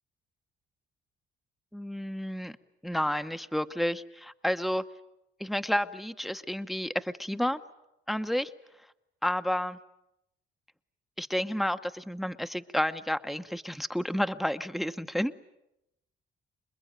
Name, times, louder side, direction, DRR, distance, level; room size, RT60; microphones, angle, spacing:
voice 1, 1.7-2.5 2.8-4.8 5.4-7.6 8.1-8.5 9.2-9.8 11.2-15.3, equal, ahead, 9 dB, 0.9 m, -30 dB
27.0 x 21.0 x 9.1 m, 0.86 s
cardioid pair, 90°, 20 cm